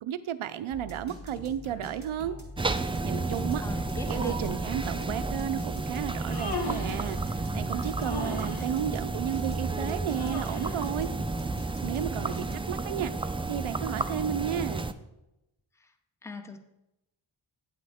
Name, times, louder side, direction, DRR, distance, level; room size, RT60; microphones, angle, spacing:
voice 1, 0.0-2.4 3.0-3.6 4.1-11.1 11.8-14.9, right 10 dB, 85° right, 11 dB, 0.5 m, -33 dB
sound 1, 0.7-12.9, left 1 dB, 35° left, 2.2 m, -44 dB
sound 2, 2.6-14.9, right 3 dB, 15° right, 0.3 m, -32 dB
voice 2, 3.6-4.7 15.8-15.9 16.2-16.6, left 3 dB, 5° left, 7 dB, 0.7 m, -40 dB
Human voice, 6.1-7.1 8.0-8.7 10.1-10.8, left 3 dB, 50° left, 1.6 m, -37 dB
9.2 x 7.7 x 3.5 m, 0.91 s
wide cardioid pair, 70°, 48 cm